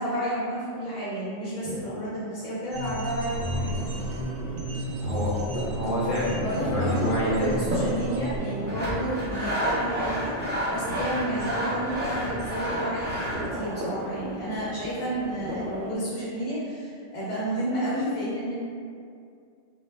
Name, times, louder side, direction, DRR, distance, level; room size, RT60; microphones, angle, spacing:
voice 1, 0.0-4.0 6.4-18.5, equal, 85° left, -9 dB, 1.1 m, -31 dB
sound 1, 2.7-8.4, right 1 dB, 90° right, 0.9 m, -32 dB
sound 2, 3.4-15.9, equal, 60° right, 0.6 m, -36 dB
voice 2, 5.0-5.3 5.7-7.5 11.3-11.4, equal, 35° left, -9 dB, 0.7 m, -28 dB
Sawing, 8.7-13.5, equal, 15° right, 0.3 m, -30 dB
2.6 x 2.1 x 3.1 m, 2.3 s
omnidirectional pair, 1.2 m